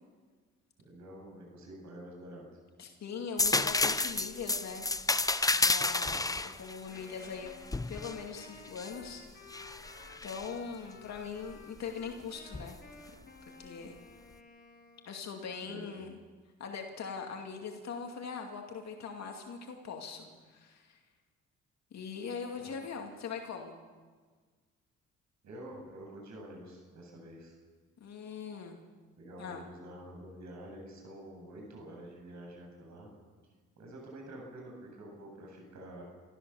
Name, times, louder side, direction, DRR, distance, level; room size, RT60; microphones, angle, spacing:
voice 1, 0.8-2.6 6.0-6.5 15.7-15.9 22.6-22.8 25.4-27.6 29.2-33.1 33.8-36.0, right 1 dB, 70° right, 0 dB, 7.6 m, -48 dB
voice 2, 2.8-4.8 5.5-6.2 6.4-7.5 7.9-9.2 10.2-12.8 13.6-14.0 15.0-16.2 16.6-21.0 21.9-23.8 28.0-28.8 29.4-29.7, left 6 dB, 60° left, 2 dB, 2.4 m, -41 dB
sound 1, 3.4-9.0 9.5-10.5 12.5-12.7, left 2 dB, 10° left, 0.7 m, -31 dB
Wind instrument woodwind instrument, 6.9-15.3, left 3 dB, 35° left, 4.0 m, -55 dB
26.5 x 14.0 x 7.1 m, 1.5 s
cardioid pair, 90°, 30 cm